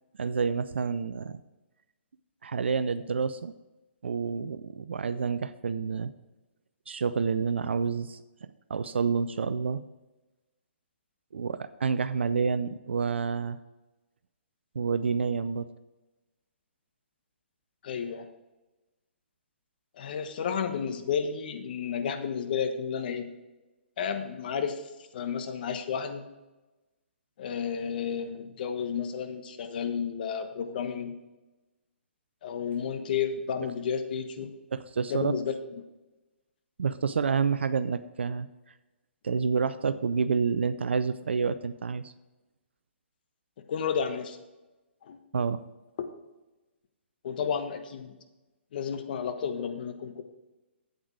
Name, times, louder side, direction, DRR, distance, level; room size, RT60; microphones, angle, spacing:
voice 1, 0.2-1.4 2.4-3.5 4.0-6.1 6.9-8.2 8.7-9.8 11.3-13.6 14.8-15.7 34.7-35.4 36.8-38.5 39.2-42.1 45.3-45.6, right 5 dB, 70° right, 13 dB, 0.4 m, -28 dB
voice 2, 17.8-18.3 20.0-23.3 24.0-24.8 25.1-26.2 27.4-31.2 32.4-34.5 35.1-35.5 43.7-44.4 45.0-45.2 46.0-46.1 47.2-48.1 48.7-50.2, left 7 dB, 50° left, 7 dB, 1.2 m, -32 dB
8.5 x 8.1 x 4.8 m, 1.1 s
figure-of-eight pair, 130°, 6 cm